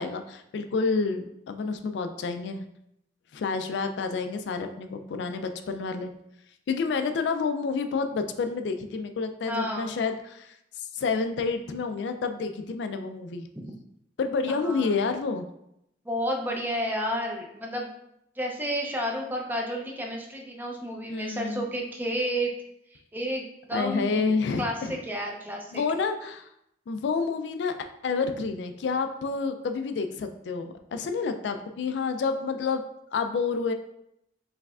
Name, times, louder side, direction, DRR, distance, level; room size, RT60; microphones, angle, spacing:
voice 1, 0.0-2.7 3.3-6.1 6.7-13.5 14.2-15.5 21.1-21.6 23.7-24.9 25.7-26.5 26.9-32.8 33.1-33.7, left 4 dB, 70° left, 7 dB, 0.3 m, -29 dB
voice 2, 9.4-9.9 14.6-14.9 16.0-17.9 18.4-22.5 22.9-24.3 24.6-25.8, equal, 10° right, 0 dB, 0.5 m, -31 dB
4.6 x 3.2 x 2.4 m, 0.79 s
head